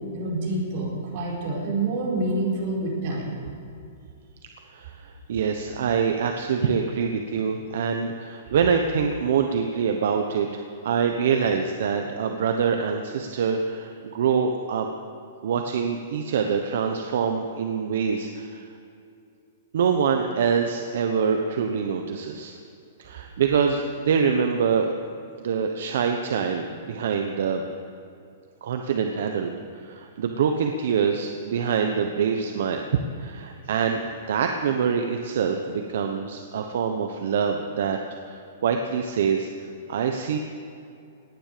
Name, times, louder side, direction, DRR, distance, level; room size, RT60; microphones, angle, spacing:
voice 1, 0.1-3.3, right 2 dB, 35° right, -4 dB, 4.7 m, -27 dB
voice 2, 4.7-14.9 15.4-18.6 19.7-22.6 23.0-24.9 25.4-27.6 28.6-32.8 33.2-34.0 34.3-38.0 38.3-39.5 39.9-40.4, right 6 dB, 60° right, 4 dB, 1.1 m, -25 dB
18.5 x 10.5 x 6.8 m, 2.5 s
hypercardioid pair, 175°, 0 cm